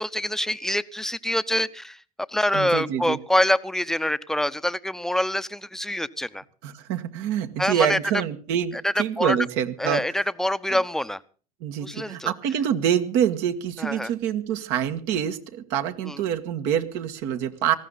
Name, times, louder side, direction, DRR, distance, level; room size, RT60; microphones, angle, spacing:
voice 1, 0.0-2.0 2.3-6.4 7.6-8.0 8.8-9.4 9.8-11.2 11.8-12.3 13.8-14.1 16.0-16.2, left 1 dB, ahead, 15 dB, 0.8 m, -25 dB
voice 2, 2.5-3.2 6.6-10.0 11.6-17.7, right 9 dB, 65° right, 8 dB, 1.7 m, -26 dB
18.5 x 15.0 x 4.1 m, 0.39 s
hypercardioid pair, 75°, 19 cm